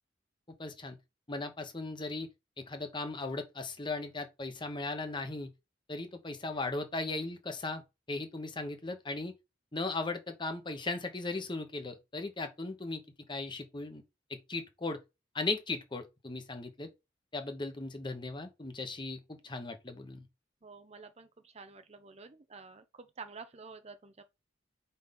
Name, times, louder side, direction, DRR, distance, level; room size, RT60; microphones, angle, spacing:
voice 1, 0.6-1.0 1.3-2.3 2.6-5.5 5.9-9.3 9.7-13.0 13.3-14.0 14.3-15.0 15.3-16.9 17.3-20.3, left 3 dB, 25° left, 1.1 m, -37 dB
voice 2, 20.6-24.2, right 4 dB, 35° right, 0.7 m, -50 dB
5.1 x 4.3 x 5.3 m
head